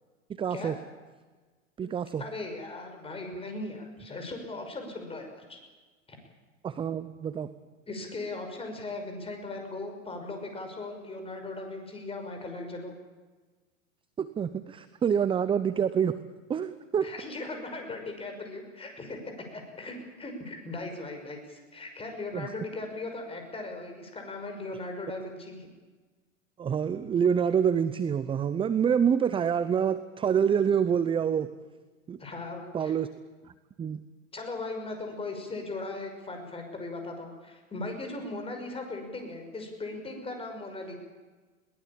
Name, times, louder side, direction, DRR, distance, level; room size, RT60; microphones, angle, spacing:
voice 1, 0.3-0.7 1.8-2.2 6.6-7.5 14.2-16.2 16.5-17.1 22.3-22.5 26.6-31.5 32.1-32.2 32.7-33.1 33.8-34.0, right 7 dB, 15° right, 14 dB, 0.7 m, -26 dB
voice 2, 2.2-5.6 6.1-6.2 7.9-12.9 17.0-25.7 32.2-32.9 34.3-41.0, left 2 dB, 15° left, 4 dB, 5.8 m, -38 dB
21.5 x 19.0 x 8.7 m, 1.3 s
hypercardioid pair, 115°, 39 cm